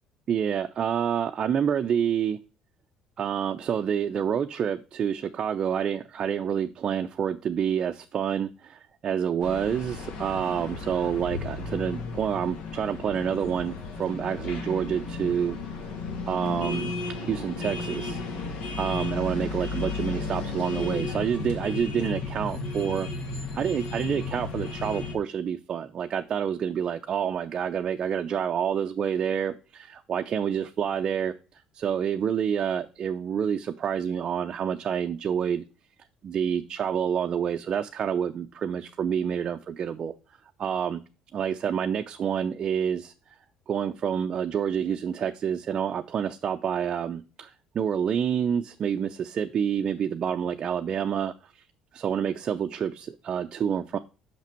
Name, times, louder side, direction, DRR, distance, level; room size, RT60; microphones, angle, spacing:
voice 1, 0.3-2.4 3.2-15.6 16.3-16.9 17.2-18.2 18.8-23.1 23.5-31.3 31.7-35.6 36.2-40.1 40.6-41.0 41.3-43.1 43.7-51.6 51.9-54.0, right 8 dB, 40° right, 0.5 m, -28 dB
sound 1, 9.4-25.1, left 3 dB, 70° left, 1.7 m, -34 dB
5.9 x 5.8 x 4.4 m
cardioid pair, 115°, 2 cm